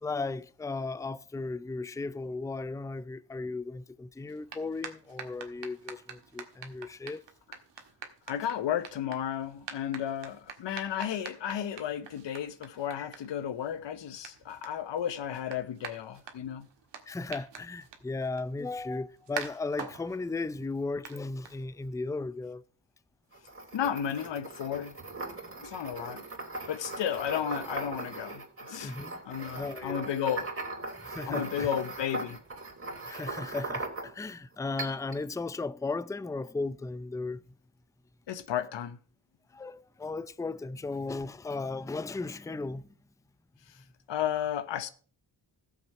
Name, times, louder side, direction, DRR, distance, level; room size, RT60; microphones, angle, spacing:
voice 1, 0.0-7.2 12.9-13.1 17.1-22.6 28.8-29.2 29.5-30.4 31.0-31.7 33.0-37.4 39.5-42.9, left 3 dB, 10° left, 0.5 m, -36 dB
sound 1, 4.2-22.0, right 6 dB, 80° right, 1.7 m, -47 dB
voice 2, 8.3-16.7 23.7-25.0 25.6-26.2 26.7-28.9 29.2-30.5 31.3-32.4 38.3-39.0 43.7-43.8 44.1-44.9, left 9 dB, 85° left, 1.0 m, -33 dB
sound 2, 23.3-34.3 34.8-35.2, right 2 dB, 30° right, 3.2 m, -39 dB
13.5 x 7.1 x 5.5 m
cardioid pair, 60°, 42 cm